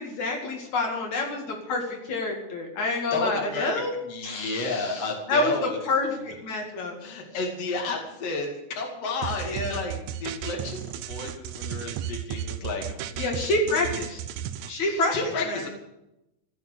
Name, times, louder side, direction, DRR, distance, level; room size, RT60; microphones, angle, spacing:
voice 1, 0.0-3.9 4.2-7.0 9.5-9.8 13.2-14.2 14.7-15.1 15.5-15.6, left 2 dB, 70° left, 1 dB, 3.6 m, -28 dB
voice 2, 3.1-5.8 6.1-6.3 7.0-13.7 14.8-15.7, left 3 dB, 55° left, 1 dB, 3.4 m, -32 dB
sound 1, 9.2-14.7, right 9 dB, 75° right, 2.1 m, -34 dB
15.0 x 9.3 x 9.4 m, 0.89 s
omnidirectional pair, 3.4 m